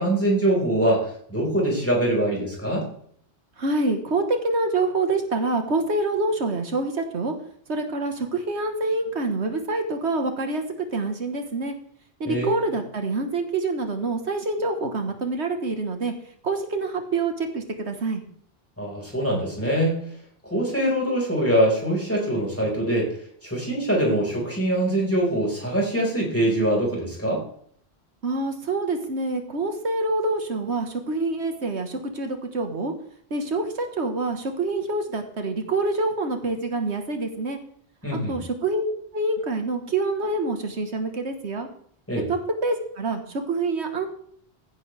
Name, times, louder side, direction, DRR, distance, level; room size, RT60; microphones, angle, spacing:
voice 1, 0.0-2.8 12.2-12.7 18.8-20.0 20.5-23.1 23.4-27.4 38.0-38.4 42.1-42.3, right 1 dB, 10° left, -3 dB, 5.1 m, -23 dB
voice 2, 3.6-7.3 7.7-10.6 10.9-11.8 12.2-16.1 16.4-18.2 28.2-32.9 33.3-37.6 38.3-38.8 39.1-41.7 42.3-44.1, right 2 dB, 85° right, 5 dB, 1.8 m, -26 dB
15.0 x 11.0 x 3.5 m, 0.63 s
omnidirectional pair, 1.1 m